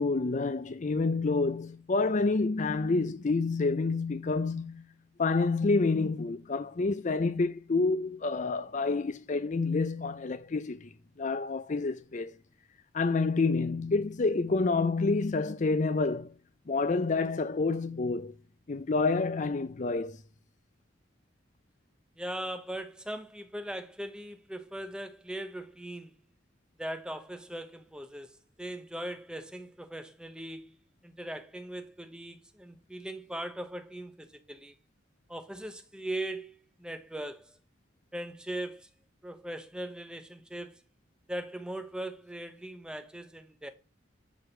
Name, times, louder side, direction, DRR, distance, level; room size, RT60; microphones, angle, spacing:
voice 1, 0.0-4.8 5.2-10.9 11.2-12.3 12.9-16.3 16.7-18.3 18.7-20.2, left 3 dB, 40° left, 0.5 m, -28 dB
voice 2, 22.2-26.1 26.8-28.3 28.6-30.8 31.0-34.7 35.3-37.6 38.1-38.9 39.2-40.8 41.3-43.7, right 1 dB, 5° right, 0.9 m, -39 dB
9.9 x 3.8 x 7.1 m
head